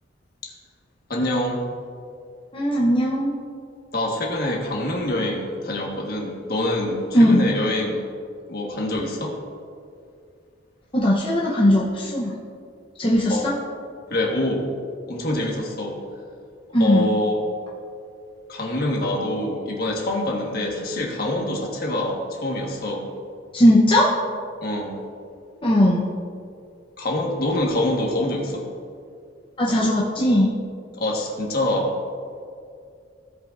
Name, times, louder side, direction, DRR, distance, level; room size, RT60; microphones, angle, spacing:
voice 1, 1.1-1.6 3.9-8.0 8.5-9.4 13.3-13.5 14.1-14.7 15.1-16.0 16.8-17.5 18.5-23.1 24.6-25.0 27.0-28.7 31.0-31.9, left 1 dB, 50° left, -1 dB, 1.4 m, -25 dB
voice 2, 2.5-3.4 7.1-7.5 10.9-12.3 13.0-13.5 16.7-17.1 23.5-24.1 25.6-26.0 29.6-30.5, left 1 dB, 25° left, -5 dB, 0.8 m, -18 dB
16.0 x 5.5 x 2.5 m, 2.3 s
head